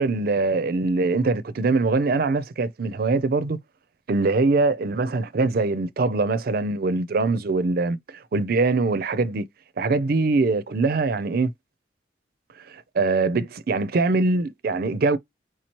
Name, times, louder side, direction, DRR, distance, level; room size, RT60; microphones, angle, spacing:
voice 1, 0.0-3.6 4.1-9.5 9.8-11.5 12.7-15.2, right 3 dB, 55° right, 0.4 m, -23 dB
4.8 x 2.9 x 2.9 m
head